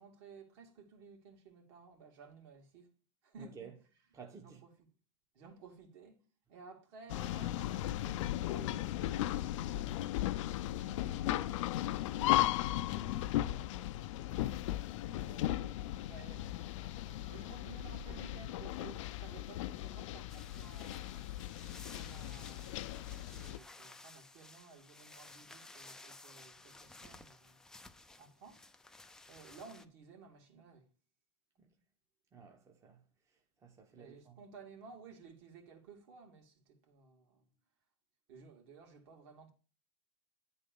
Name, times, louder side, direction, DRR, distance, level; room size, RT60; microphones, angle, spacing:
voice 1, 0.0-2.9 3.2-3.7 4.4-4.7 5.3-6.2 6.5-10.1 10.8-14.6 15.2-15.8 16.0-16.5 17.3-21.2 21.9-27.6 28.2-28.6 29.3-30.9 33.9-37.5 38.3-39.5, right 4 dB, 60° right, 2.3 m, -56 dB
voice 2, 3.4-3.7 4.1-4.6 31.6-31.7 32.3-33.0 33.6-34.4, right 6 dB, 20° right, 0.8 m, -53 dB
sound 1, 7.1-23.6, left 14 dB, 75° left, 0.4 m, -36 dB
sound 2, 13.9-18.3, right 1 dB, 40° right, 1.4 m, -58 dB
sound 3, 20.3-29.9, left 2 dB, 5° left, 0.3 m, -55 dB
9.3 x 3.9 x 5.3 m
supercardioid pair, 145°, 16 cm